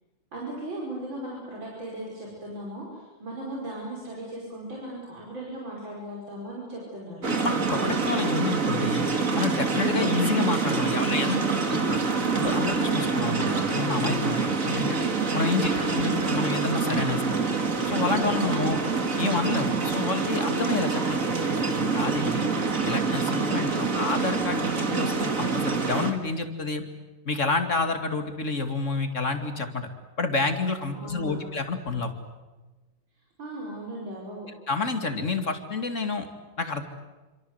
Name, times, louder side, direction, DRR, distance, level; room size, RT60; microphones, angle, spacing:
voice 1, 0.3-7.2 13.2-13.6 18.5-18.9 23.4-24.0 30.9-31.4 33.4-34.5, right 1 dB, 80° right, -3 dB, 6.2 m, -38 dB
sound 1, 7.2-26.1, right 4 dB, 45° right, 2.6 m, -26 dB
voice 2, 7.3-9.0 9.3-12.0 12.4-13.4 13.7-15.0 15.3-17.4 17.9-18.8 19.2-22.5 22.8-26.8 27.3-29.9 30.2-32.1 34.7-36.3 36.6-36.8, left 3 dB, 40° left, 6 dB, 2.6 m, -29 dB
28.0 x 26.0 x 8.0 m, 1.2 s
omnidirectional pair, 2.1 m